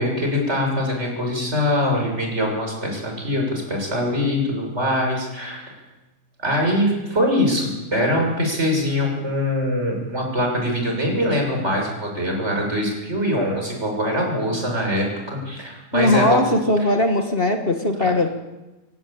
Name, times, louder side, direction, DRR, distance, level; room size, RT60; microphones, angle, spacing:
voice 1, 0.0-5.7 6.4-16.4 18.0-18.1, left 1 dB, 50° right, 1 dB, 7.1 m, -23 dB
voice 2, 15.9-18.3, left 1 dB, 40° left, 4 dB, 1.9 m, -19 dB
27.0 x 16.5 x 8.9 m, 1.1 s
omnidirectional pair, 1.5 m